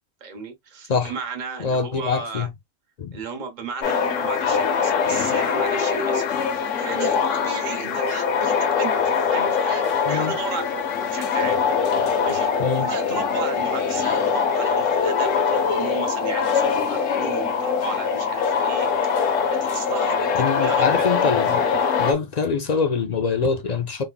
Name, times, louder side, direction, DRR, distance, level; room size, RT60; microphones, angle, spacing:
voice 1, 0.2-2.5 3.1-9.0 9.3-10.8 11.1-11.6 12.2-18.9 19.6-21.2, right 5 dB, 40° right, 1.0 m, -34 dB
voice 2, 1.6-2.5 3.0-3.2 10.1-10.3 12.6-12.9 20.4-21.7 22.0-24.0, left 5 dB, 55° left, 0.4 m, -24 dB
sound 1, 3.8-22.1, left 6 dB, 80° left, 1.1 m, -22 dB
3.5 x 3.2 x 2.2 m
omnidirectional pair, 1.3 m